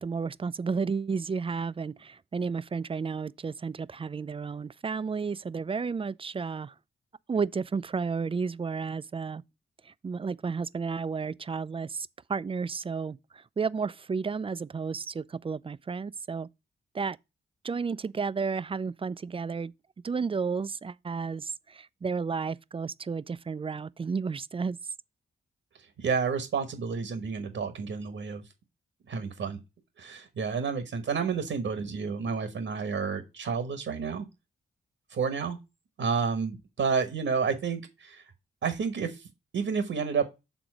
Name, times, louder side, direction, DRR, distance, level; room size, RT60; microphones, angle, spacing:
voice 1, 0.0-6.7 7.3-9.4 9.8-16.5 16.9-17.2 17.6-19.7 20.0-24.8, right 5 dB, 25° right, 0.4 m, -32 dB
voice 2, 26.0-28.4 29.1-29.6 30.0-34.3 35.1-35.6 36.0-38.2 38.6-39.2 39.5-40.2, right 5 dB, 75° right, 1.3 m, -30 dB
7.1 x 3.8 x 6.1 m
cardioid pair, 60°, 21 cm